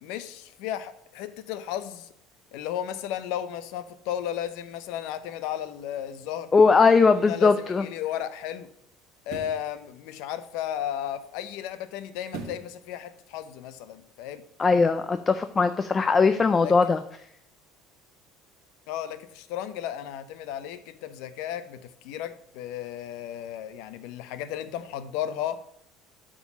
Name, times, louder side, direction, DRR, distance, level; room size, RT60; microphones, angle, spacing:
voice 1, 0.0-2.1 2.5-6.5 7.1-8.7 9.3-14.4 16.6-16.7 18.9-25.6, left 11 dB, 75° left, 13 dB, 0.6 m, -34 dB
voice 2, 6.5-7.8 14.6-17.0, left 4 dB, 25° left, 10 dB, 0.4 m, -20 dB
sound 1, 9.2-9.7 12.3-12.8 13.2-13.3, right 4 dB, 60° right, 1.3 m, -39 dB
8.1 x 3.8 x 5.9 m, 0.74 s
cardioid pair, 125°, 0 cm